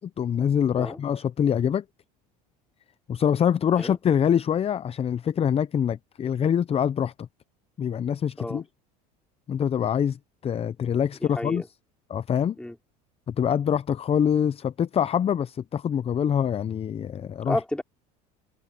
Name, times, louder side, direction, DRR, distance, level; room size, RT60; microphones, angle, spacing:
voice 1, 0.0-1.8 3.1-7.3 7.8-8.6 9.5-11.6 12.1-12.6 13.3-17.6, left 8 dB, 30° left, 0.7 m, -25 dB
voice 2, 11.2-11.7 12.6-12.7 17.5-17.8, left 1 dB, 5° left, 4.6 m, -31 dB
hypercardioid pair, 90°, 20 cm